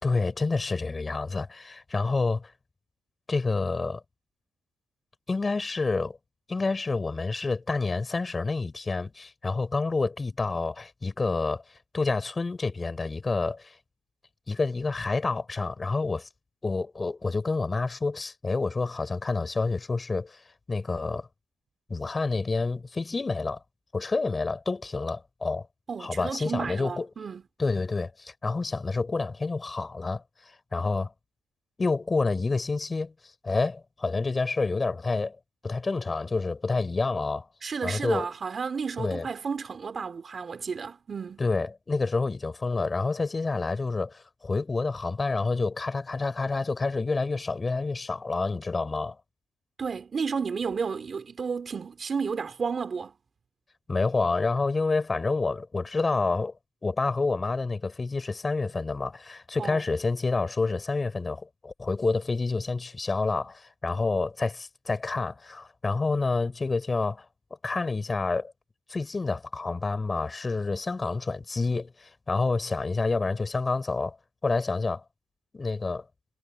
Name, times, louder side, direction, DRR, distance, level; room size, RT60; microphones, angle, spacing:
voice 1, 0.0-2.5 3.3-4.0 5.3-6.2 6.5-11.6 11.9-13.7 14.5-16.3 16.6-20.4 20.7-21.3 21.9-23.6 23.9-25.7 26.0-27.1 27.6-30.2 30.7-31.1 31.8-33.1 33.4-35.4 35.6-37.5 37.8-38.3 39.0-39.3 41.4-49.2 53.9-56.5 56.8-67.3 67.6-68.5 68.9-74.2 74.4-75.0 75.5-76.0, left 3 dB, 25° left, 4.7 m, -28 dB
voice 2, 25.9-27.4 37.6-41.4 49.8-53.2 59.6-59.8, right 5 dB, 40° right, 3.3 m, -32 dB
cardioid pair, 90°, 0 cm